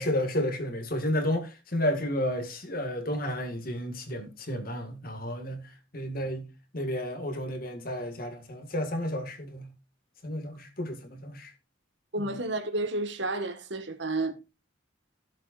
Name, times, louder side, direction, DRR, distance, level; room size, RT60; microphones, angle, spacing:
voice 1, 0.0-5.6 5.9-6.5 6.7-9.7 10.2-11.5 12.2-12.3, left 1 dB, 50° left, 2.0 m, -31 dB
voice 2, 12.1-14.3, right 2 dB, 60° right, 1.7 m, -31 dB
15.5 x 7.4 x 2.5 m
head